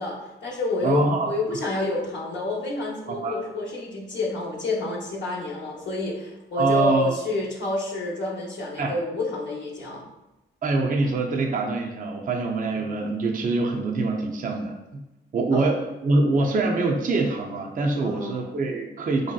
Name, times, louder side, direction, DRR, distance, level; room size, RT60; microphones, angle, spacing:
voice 1, 0.0-10.0 15.5-15.7 18.0-18.4, left 2 dB, 60° left, -7 dB, 0.8 m, -29 dB
voice 2, 0.8-1.3 3.2-3.4 6.5-7.2 8.8-8.9 10.6-15.0 15.3-19.3, right 3 dB, 40° right, 1 dB, 0.5 m, -24 dB
3.0 x 2.7 x 2.2 m, 0.98 s
cardioid pair, 70°, 21 cm